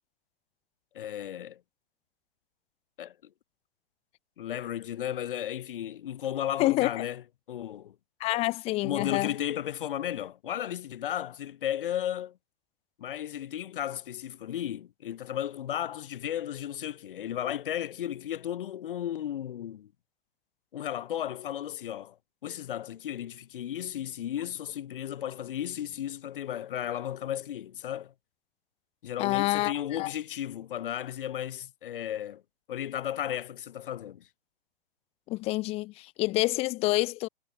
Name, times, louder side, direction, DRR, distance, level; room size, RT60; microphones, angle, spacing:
voice 1, 0.9-1.6 3.0-3.1 4.4-7.9 8.8-12.4 13.0-19.9 20.7-22.2 22.4-28.1 29.0-32.4 32.7-34.3, left 11 dB, 60° left, 3.1 m, -34 dB
voice 2, 6.6-6.9 8.2-9.3 29.2-29.7 30.0-30.1 35.3-37.3, left 19 dB, 20° left, 0.6 m, -27 dB
hypercardioid pair, 130°, 30 cm